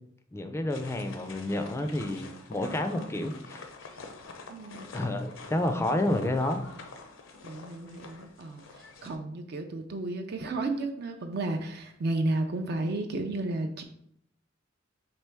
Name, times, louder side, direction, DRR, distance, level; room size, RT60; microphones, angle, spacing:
voice 1, 0.3-3.7 4.9-6.6, left 1 dB, 15° left, 7 dB, 0.3 m, -30 dB
sound 1, 0.7-9.2, left 3 dB, 80° left, 0.5 m, -47 dB
voice 2, 4.5-5.0 7.4-8.7 9.0-13.8, right 2 dB, 55° right, 5 dB, 0.4 m, -32 dB
4.4 x 2.9 x 3.4 m, 0.70 s
head